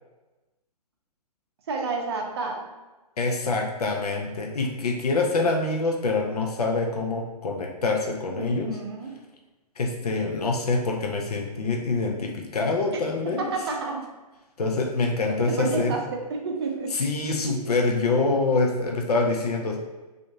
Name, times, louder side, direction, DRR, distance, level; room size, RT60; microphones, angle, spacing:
voice 1, 1.7-2.7 8.3-9.2 13.2-14.1 15.5-17.0 17.4-17.6, right 4 dB, 40° right, 1 dB, 0.6 m, -30 dB
voice 2, 3.2-8.7 9.8-13.5 14.6-16.0 16.9-19.8, left 3 dB, 70° left, 1 dB, 0.5 m, -25 dB
3.4 x 2.5 x 2.6 m, 1.1 s
figure-of-eight pair, 125°, 21 cm